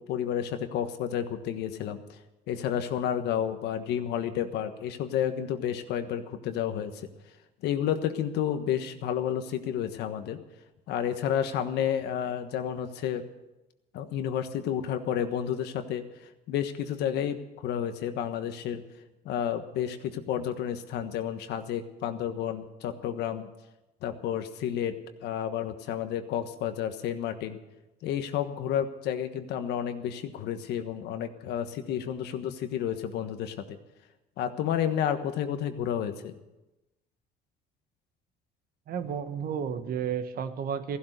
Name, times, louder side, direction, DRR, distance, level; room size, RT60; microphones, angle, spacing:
voice 1, 0.0-2.2 2.5-7.1 7.6-10.4 10.9-13.2 13.9-16.0 16.5-18.8 19.2-23.5 24.0-24.9 25.2-27.6 28.0-33.8 34.4-36.4, left 9 dB, 80° left, 8 dB, 1.3 m, -31 dB
voice 2, 38.9-41.0, right 7 dB, 60° right, 9 dB, 1.3 m, -32 dB
15.5 x 11.5 x 6.7 m, 0.98 s
cardioid pair, 110°, 17 cm